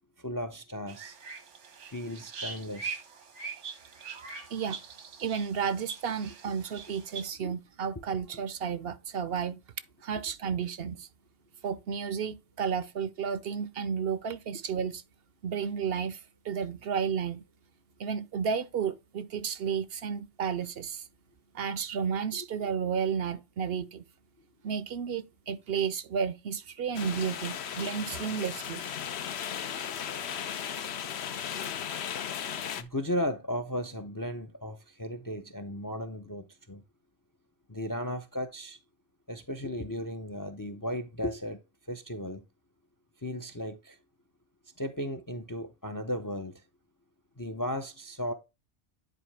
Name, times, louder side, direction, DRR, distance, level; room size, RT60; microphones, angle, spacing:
voice 1, 0.2-1.2 1.8-3.0 7.4-7.6 32.8-36.8 37.7-38.8 39.3-41.6 41.9-42.4 43.2-44.0 44.8-46.6 47.4-48.3, left 1 dB, 25° left, 0.4 m, -35 dB
sound 1, 0.9-7.2, right 5 dB, 85° right, 1.5 m, -42 dB
voice 2, 4.5-4.8 5.2-9.6 10.0-11.1 11.6-15.0 15.4-17.4 18.0-21.1 21.5-24.0 24.6-28.8, right 7 dB, 65° right, 0.8 m, -32 dB
sound 2, 26.9-32.8, left 8 dB, 65° left, 1.0 m, -36 dB
10.0 x 4.5 x 3.2 m
omnidirectional pair, 1.2 m